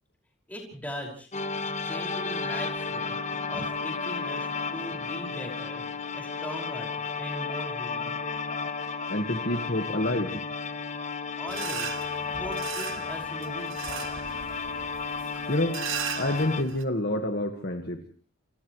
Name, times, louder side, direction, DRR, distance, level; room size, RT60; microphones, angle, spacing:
voice 1, 0.5-1.3 1.8-3.2 3.5-5.8 6.1-8.2 11.3-12.0 12.3-14.3, equal, 10° left, 0 dB, 5.6 m, -40 dB
sound 1, 1.3-16.6, left 4 dB, 35° left, 1.2 m, -33 dB
voice 2, 9.1-10.4 15.5-15.8 16.2-18.0, left 1 dB, 50° left, 4 dB, 1.7 m, -28 dB
sound 2, 11.5-16.8, right 8 dB, 75° right, 1.7 m, -38 dB
29.0 x 28.0 x 3.2 m, 0.41 s
head